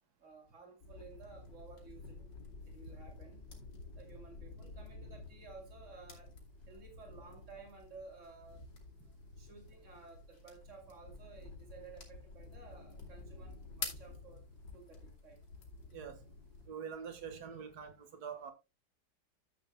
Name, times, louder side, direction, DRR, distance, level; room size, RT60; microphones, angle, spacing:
voice 1, 0.2-2.3 2.6-3.5 3.9-6.3 6.7-8.6 9.4-14.4 14.7-15.4, right 4 dB, 40° right, 3.0 m, -55 dB
sound 1, 0.8-16.7, left 3 dB, 85° left, 3.2 m, -50 dB
voice 2, 15.9-16.2 16.7-18.5, right 7 dB, 65° right, 2.0 m, -45 dB
13.5 x 8.4 x 2.2 m
omnidirectional pair, 1.9 m